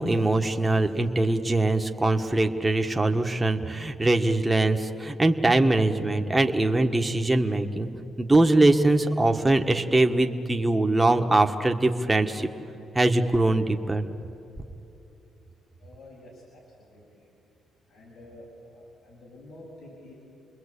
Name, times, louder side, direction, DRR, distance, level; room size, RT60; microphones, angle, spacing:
voice 1, 0.0-7.9 8.2-12.5 12.9-14.0, right 2 dB, 15° right, 4 dB, 1.5 m, -22 dB
voice 2, 15.8-17.3 17.9-20.1, left 1 dB, 80° left, -6 dB, 7.1 m, -49 dB
29.5 x 21.5 x 8.5 m, 2.9 s
cardioid pair, 90°, 0 cm